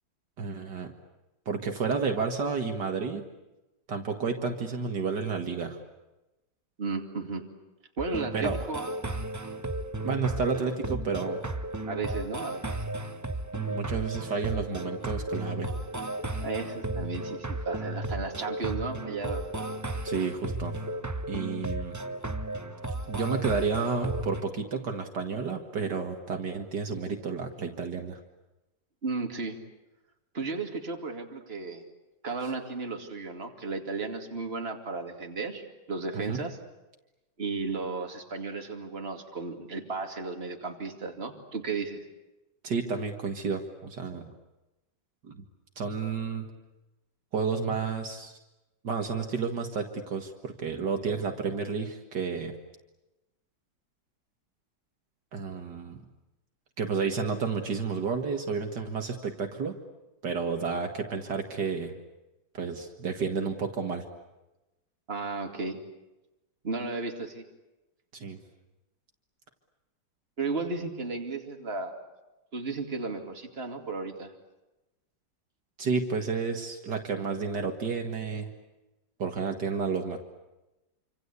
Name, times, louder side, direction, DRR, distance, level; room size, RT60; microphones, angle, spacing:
voice 1, 0.4-0.9 1.5-3.3 3.9-5.8 8.3-8.6 10.0-11.4 13.5-15.7 20.0-20.8 21.3-22.0 23.1-28.2 36.1-36.4 42.6-44.3 45.3-45.4 45.8-46.5 47.3-48.4 48.8-52.5 55.3-56.0 56.8-59.8 60.2-61.9 62.5-64.0 68.1-68.4 75.8-78.5 79.2-80.2, right 5 dB, 65° right, 4 dB, 2.4 m, -31 dB
voice 2, 6.8-7.4 8.0-8.8 11.9-12.6 16.4-19.4 29.0-29.6 30.3-31.8 32.2-36.6 37.4-42.0 65.1-65.8 66.6-67.4 70.4-71.9 72.5-74.3, right 3 dB, 30° right, 3 dB, 2.8 m, -34 dB
sound 1, 8.0-24.4, right 1 dB, 15° right, 0.8 m, -34 dB
27.0 x 26.0 x 8.4 m, 1.0 s
omnidirectional pair, 2.0 m